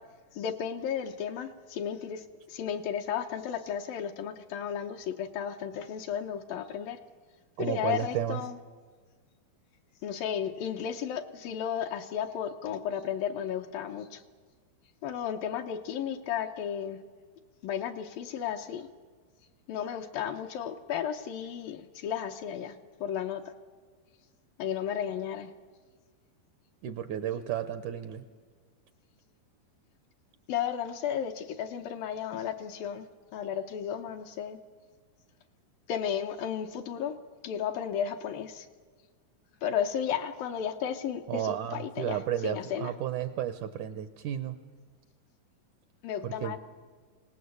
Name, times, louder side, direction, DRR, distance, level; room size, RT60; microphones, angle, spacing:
voice 1, 0.3-7.0 7.6-8.6 10.0-14.2 15.0-17.0 17.6-18.9 19.7-23.5 24.6-25.5 30.5-33.1 33.3-34.6 35.9-37.2 37.4-38.7 39.6-42.9 46.0-46.6, left 8 dB, 75° left, 4 dB, 2.5 m, -34 dB
voice 2, 7.6-8.4 26.8-28.2 41.3-44.6 46.2-46.6, right 10 dB, 75° right, 11 dB, 1.8 m, -33 dB
24.5 x 19.0 x 8.2 m, 1.5 s
omnidirectional pair, 4.5 m